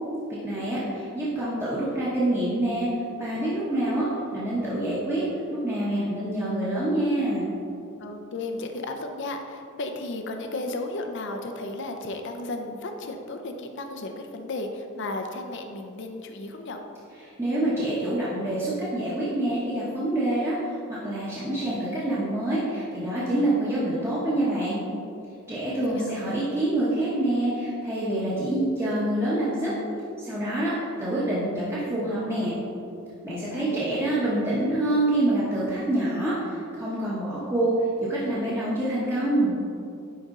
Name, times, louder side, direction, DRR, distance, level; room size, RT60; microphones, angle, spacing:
voice 1, 0.4-2.9 3.2-5.2 5.5-7.5 17.2-24.8 25.5-29.7 30.2-32.5 33.2-37.7 38.1-39.5, right 1 dB, 10° right, -10 dB, 1.1 m, -26 dB
voice 2, 8.0-16.8 25.9-26.2 33.5-34.1, left 2 dB, 55° left, 4 dB, 0.6 m, -34 dB
10.0 x 4.3 x 3.7 m, 2.6 s
head